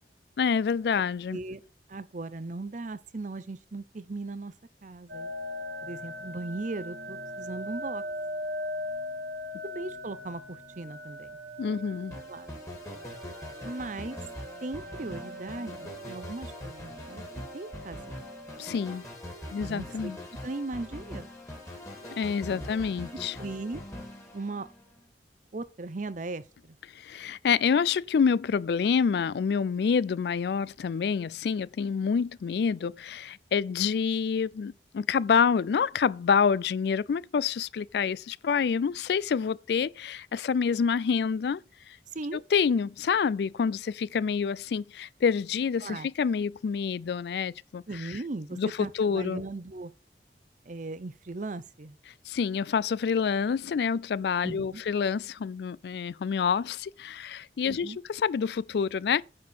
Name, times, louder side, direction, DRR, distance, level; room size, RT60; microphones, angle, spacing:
voice 1, 0.4-1.4 11.6-12.2 18.6-19.0 19.5-20.2 22.2-23.4 26.9-41.6 41.9-42.0 42.5-48.2 48.5-49.4 52.3-59.2, left 6 dB, 65° left, 0.3 m, -27 dB
voice 2, 1.3-1.6 1.9-4.5 4.8-5.3 5.8-8.0 9.6-11.4 12.3-12.5 13.6-14.2 14.6-17.2 17.5-18.1 19.6-20.1 20.4-21.3 22.5-22.7 23.4-23.8 24.3-24.7 25.5-26.8 42.1-42.4 45.8-46.1 47.9-49.9 50.7-52.0 54.4-54.8 57.7-58.0, right 2 dB, 45° right, 0.6 m, -38 dB
sound 1, 5.1-18.9, equal, 70° right, 1.6 m, -40 dB
sound 2, 12.1-25.0, left 1 dB, 15° left, 2.5 m, -43 dB
9.6 x 4.3 x 6.3 m
head